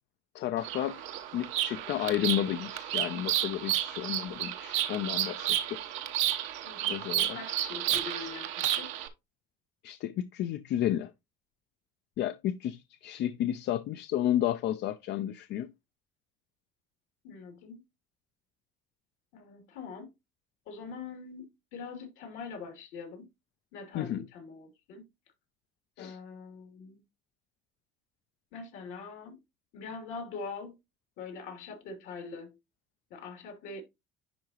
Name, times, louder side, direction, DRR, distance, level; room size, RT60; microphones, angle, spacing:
voice 1, 0.3-1.0 1.3-5.8 6.9-7.4 9.8-11.1 12.2-15.7 23.9-24.2 26.0-26.2, left 12 dB, 60° left, 0.5 m, -32 dB
Bird vocalization bird call bird song, 0.6-9.1, right 13 dB, 85° right, 0.9 m, -32 dB
voice 2, 6.6-9.0 17.2-17.8 19.3-20.1 20.7-23.3 23.7-25.1 26.0-27.0 28.5-29.4 29.7-30.8 31.2-32.5 33.1-33.8, left 4 dB, 80° left, 2.9 m, -43 dB
10.5 x 3.8 x 3.0 m
supercardioid pair, 95°, 20 cm